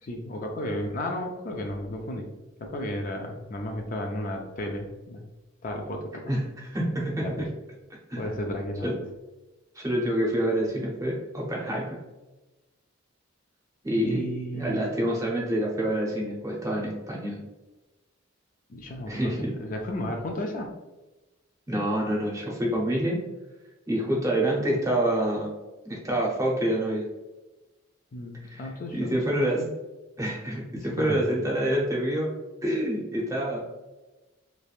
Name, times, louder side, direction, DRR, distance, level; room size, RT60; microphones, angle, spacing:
voice 1, 0.0-2.3 2.6-5.2 5.6-6.3 7.2-7.3 8.2-9.0 14.0-14.8 18.7-20.7 28.1-29.2 29.6-29.7 31.0-31.2, left 1 dB, 40° left, 2 dB, 0.4 m, -33 dB
voice 2, 6.3-7.5 8.1-8.3 8.8-9.0 9.7-12.0 13.8-14.2 14.5-17.4 19.1-19.5 21.7-23.2 23.9-25.5 25.9-27.1 28.5-29.6 30.2-32.3 32.6-33.6, right 1 dB, 15° right, -3 dB, 0.7 m, -27 dB
3.3 x 3.1 x 2.4 m, 1.1 s
head